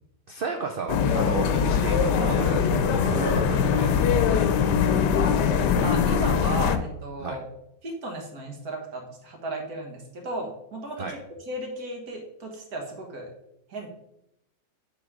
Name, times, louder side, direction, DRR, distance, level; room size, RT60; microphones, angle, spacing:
voice 1, 0.3-5.3 7.2-7.4 11.0-11.1, right 4 dB, 90° right, 3 dB, 0.4 m, -34 dB
sound 1, 0.9-6.8, left 7 dB, 85° left, 1.3 m, -22 dB
voice 2, 5.8-7.4 7.8-11.2 11.5-13.3 13.7-13.9, right 1 dB, 65° right, 1 dB, 1.9 m, -35 dB
8.0 x 3.7 x 4.8 m, 0.82 s
omnidirectional pair, 1.8 m